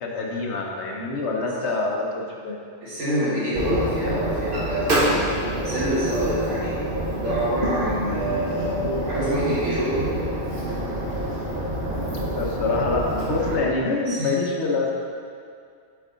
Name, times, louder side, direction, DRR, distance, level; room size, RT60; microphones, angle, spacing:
voice 1, 0.0-2.6 12.4-14.9, left 3 dB, 70° left, -1 dB, 1.2 m, -25 dB
voice 2, 2.8-5.3 5.6-6.7 7.2-10.1 14.1-14.3, equal, 85° right, -10 dB, 2.0 m, -26 dB
sound 1, 3.5-13.6, right 1 dB, 50° right, 1.2 m, -27 dB
8.0 x 4.6 x 3.9 m, 2.2 s
omnidirectional pair, 1.2 m